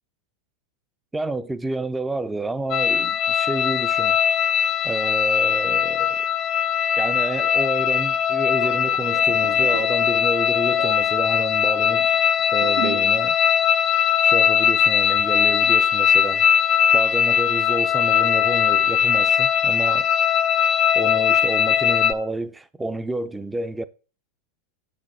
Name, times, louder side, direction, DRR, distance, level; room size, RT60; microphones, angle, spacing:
voice 1, 1.1-4.2 4.8-6.2 7.0-12.2 12.5-13.4 14.2-16.5 16.9-20.1 20.9-23.8, right 2 dB, 10° right, 0.6 m, -29 dB
sound 1, 2.7-22.1, left 8 dB, 40° left, 0.5 m, -20 dB
sound 2, 8.3-13.2 13.5-13.7, right 8 dB, 70° right, 0.9 m, -36 dB
6.8 x 5.1 x 6.1 m
hypercardioid pair, 95°, 0 cm